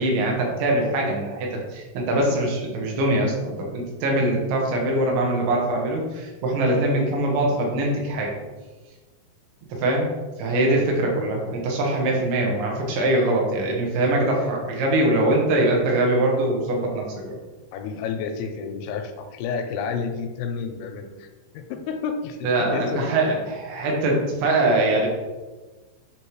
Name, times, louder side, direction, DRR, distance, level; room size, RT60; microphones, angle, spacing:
voice 1, 0.0-8.3 9.7-10.1 10.4-17.3 22.4-23.4 23.7-25.1, right 1 dB, 70° right, -1 dB, 3.1 m, -22 dB
voice 2, 17.7-21.3 21.5-23.3, left 5 dB, 85° left, 5 dB, 3.1 m, -30 dB
9.7 x 3.3 x 3.0 m, 1.2 s
omnidirectional pair, 5.8 m